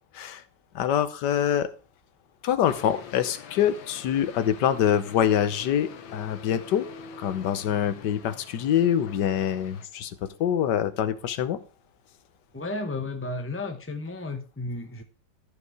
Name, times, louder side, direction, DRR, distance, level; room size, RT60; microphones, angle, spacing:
voice 1, 0.7-1.7 2.4-6.9 7.2-11.6, left 9 dB, 70° left, 1.4 m, -25 dB
sound 1, 2.6-9.9, left 6 dB, 90° left, 1.8 m, -44 dB
voice 2, 12.5-15.0, left 2 dB, 15° left, 0.4 m, -33 dB
13.5 x 5.2 x 4.7 m
omnidirectional pair, 2.0 m